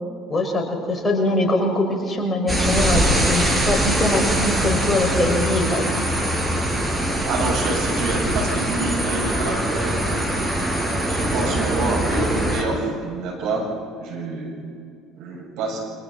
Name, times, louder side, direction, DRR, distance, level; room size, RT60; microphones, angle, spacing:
voice 1, 0.3-6.0, left 2 dB, 20° left, 1 dB, 5.9 m, -22 dB
sound 1, 2.5-12.6, right 1 dB, 10° right, 5.4 m, -22 dB
voice 2, 7.2-10.2 11.1-13.7 14.0-14.6 15.2-15.9, right 3 dB, 60° right, -1 dB, 7.3 m, -27 dB
29.5 x 25.5 x 4.3 m, 2.3 s
figure-of-eight pair, 60°, 0 cm